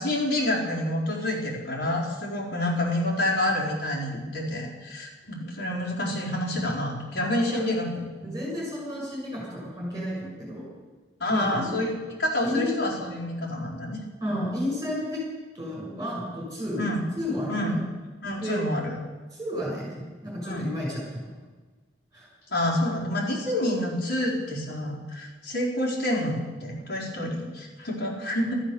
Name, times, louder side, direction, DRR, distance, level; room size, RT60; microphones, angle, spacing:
voice 1, 0.0-8.3 11.2-11.9 12.2-14.0 14.3-14.4 16.8-17.0 17.5-17.8 18.2-19.0 20.4-20.7 22.5-28.6, left 1 dB, 75° left, -6 dB, 4.5 m, -28 dB
voice 2, 8.2-10.7 11.3-11.8 12.4-12.7 14.2-15.2 15.5-16.8 17.2-17.8 18.4-18.6 19.3-21.3 22.1-22.3, left 1 dB, 20° right, -5 dB, 6.9 m, -32 dB
14.0 x 14.0 x 7.0 m, 1.3 s
head